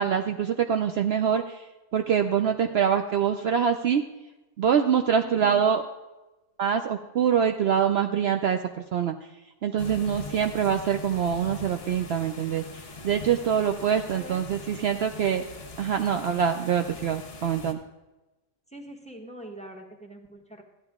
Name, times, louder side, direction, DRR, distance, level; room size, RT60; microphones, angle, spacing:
voice 1, 0.0-1.6 1.9-4.0 4.6-5.8 6.6-8.6 8.9-9.1 9.6-12.6 13.0-15.4 15.8-17.8, right 8 dB, 80° right, 6 dB, 0.5 m, -24 dB
voice 2, 5.2-5.6 14.1-14.4 18.7-20.6, right 1 dB, 5° left, 3 dB, 0.9 m, -43 dB
sound 1, 9.8-17.7, left 3 dB, 40° left, 1.2 m, -42 dB
13.5 x 10.0 x 3.6 m, 1.1 s
omnidirectional pair, 1.7 m